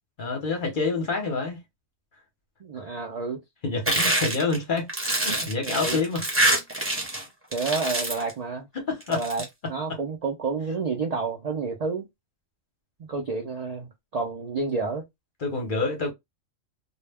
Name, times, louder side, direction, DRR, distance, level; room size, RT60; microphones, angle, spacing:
voice 1, 0.2-1.6 3.6-4.9 5.2-6.3 8.7-9.2 15.4-16.1, left 3 dB, 45° left, 0.8 m, -27 dB
voice 2, 2.6-3.4 5.6-6.0 7.5-8.7 9.1-9.4 9.7-12.1 13.0-15.0, right 4 dB, 75° right, 0.3 m, -29 dB
sound 1, 3.9-7.2 7.5-8.3 9.0-9.4, right 1 dB, 15° right, 0.7 m, -25 dB
2.2 x 2.1 x 3.2 m
omnidirectional pair, 1.4 m